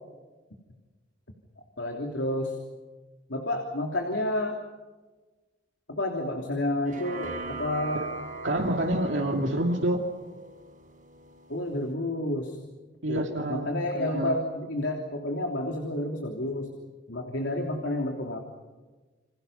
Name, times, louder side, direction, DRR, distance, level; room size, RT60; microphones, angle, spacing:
voice 1, 1.8-2.6 3.3-4.6 5.9-8.0 11.5-12.6 13.1-16.8 17.1-18.4, left 1 dB, 75° left, 2 dB, 3.2 m, -30 dB
sound 1, 6.8-11.9, right 2 dB, 45° right, 5.0 m, -40 dB
voice 2, 8.4-10.1 13.0-14.4, right 1 dB, 80° right, 1 dB, 2.6 m, -27 dB
29.5 x 27.0 x 5.7 m, 1.3 s
head